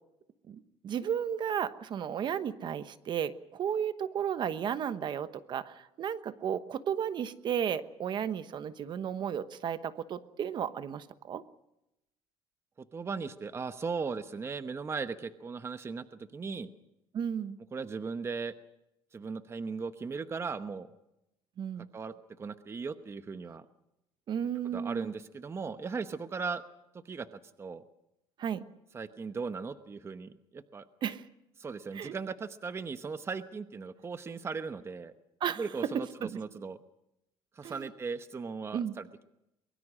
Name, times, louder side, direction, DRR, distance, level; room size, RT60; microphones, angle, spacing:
voice 1, 0.5-11.4 17.1-17.6 21.6-21.9 24.3-25.1 28.4-28.6 31.0-31.2 31.9-32.1 35.4-35.6 35.9-36.4 37.6-37.9 38.7-38.9, right 8 dB, 50° right, 12 dB, 1.1 m, -34 dB
voice 2, 12.9-16.7 17.7-18.6 19.1-20.9 21.9-23.7 24.6-26.6 27.0-27.8 28.9-30.8 31.6-35.1 35.6-36.8 37.6-39.2, right 5 dB, 25° right, 10 dB, 1.0 m, -38 dB
23.5 x 22.0 x 6.4 m, 0.88 s
cardioid pair, 120°, 10 cm